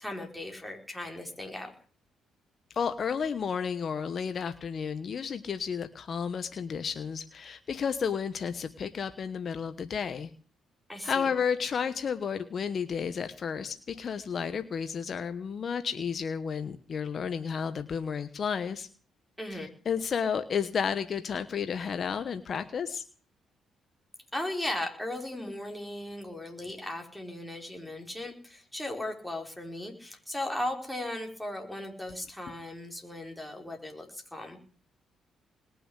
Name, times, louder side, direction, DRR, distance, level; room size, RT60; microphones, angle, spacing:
voice 1, 0.0-1.7 10.9-11.3 19.4-19.7 24.3-34.6, left 1 dB, 5° left, 2 dB, 5.1 m, -37 dB
voice 2, 2.7-10.3 11.0-18.9 19.5-23.0, left 6 dB, 50° left, 11 dB, 1.1 m, -32 dB
20.5 x 6.9 x 9.8 m, 0.42 s
cardioid pair, 90°, 0 cm